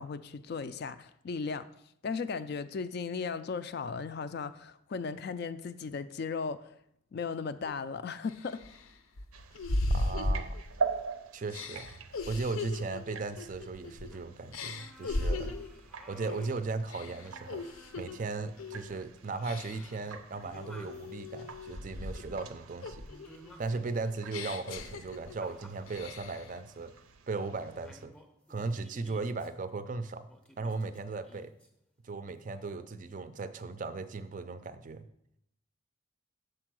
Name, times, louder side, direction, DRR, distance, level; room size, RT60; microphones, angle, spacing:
voice 1, 0.0-1.7 2.0-6.7 7.1-8.6, left 5 dB, 50° left, 0.3 m, -36 dB
sound 1, 7.6-7.7 8.3-11.0 11.5-14.1 14.5-15.8 16.2-16.5 16.9-18.2 18.6-18.9 19.4-20.0 20.5-22.4 22.8-25.5 25.9-26.5, left 2 dB, 85° left, 0.6 m, -37 dB
sound 2, 9.3-28.1, right 5 dB, 85° right, 0.6 m, -44 dB
voice 2, 9.9-10.6 11.3-11.9 12.3-15.5 16.1-17.6 18.0-23.0 23.6-26.9 27.3-28.1 28.5-30.2 30.6-31.5 32.0-35.0, right 3 dB, 40° right, 0.4 m, -37 dB
sound 3, 14.1-14.3 14.7-16.7 17.0-18.9 19.2-21.1 22.0-24.0 24.4-26.4 26.8-27.0 27.4-27.6 27.8-29.5 30.3-31.7 32.5-32.9, equal, 5° left, 0.6 m, -57 dB
6.6 x 4.5 x 6.1 m
head